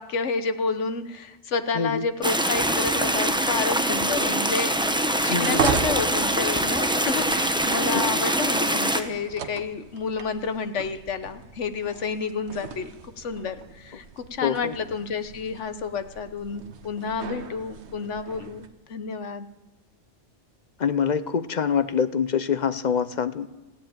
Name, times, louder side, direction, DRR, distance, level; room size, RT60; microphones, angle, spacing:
voice 1, 0.0-4.7 5.2-12.9 13.2-19.5, left 5 dB, 80° left, 10 dB, 1.3 m, -30 dB
voice 2, 1.7-2.0 5.3-5.6 7.9-8.0 14.4-14.7 20.8-23.5, left 7 dB, 45° left, 13 dB, 0.6 m, -25 dB
sound 1, 2.2-9.0, right 1 dB, 5° right, 0.7 m, -24 dB
sound 2, 2.9-18.7, right 6 dB, 65° right, 1.2 m, -37 dB
15.5 x 9.8 x 8.9 m, 1.1 s
omnidirectional pair, 1.2 m